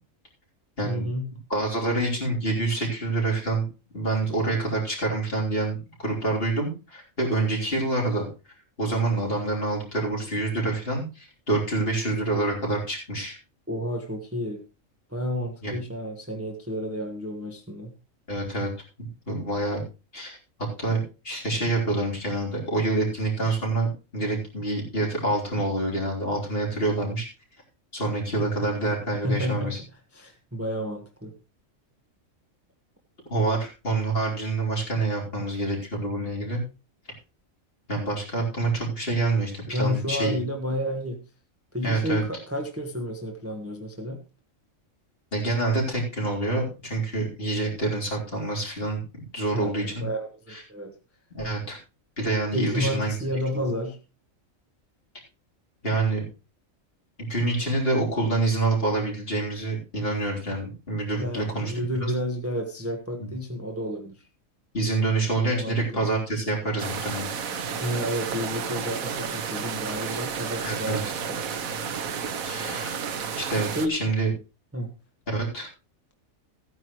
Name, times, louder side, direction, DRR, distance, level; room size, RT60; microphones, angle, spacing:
voice 1, 0.9-1.3 13.7-14.6 15.1-17.9 29.2-29.8 30.1-31.3 39.7-41.2 41.7-44.2 49.5-50.9 52.5-54.0 61.2-64.2 65.3-66.0 67.8-71.4 73.8-73.9 74.7-74.9, equal, 10° right, 3 dB, 1.2 m, -31 dB
voice 2, 1.5-3.6 3.9-8.3 8.8-13.4 15.6-15.8 18.3-18.7 19.0-19.8 20.1-21.0 21.2-27.3 27.9-29.8 33.3-36.6 37.9-40.4 41.8-42.2 45.3-49.0 49.3-50.1 50.5-50.6 51.3-51.8 52.2-53.1 53.5-53.6 55.8-56.2 57.3-61.7 62.0-62.1 63.2-63.3 64.7-67.3 70.6-71.0 72.5-73.0 73.4-74.3 75.3-75.7, right 2 dB, 45° left, -3 dB, 3.8 m, -27 dB
sound 1, 66.8-73.9, right 6 dB, 85° right, 1.4 m, -31 dB
15.0 x 9.5 x 3.1 m, 0.30 s
omnidirectional pair, 1.4 m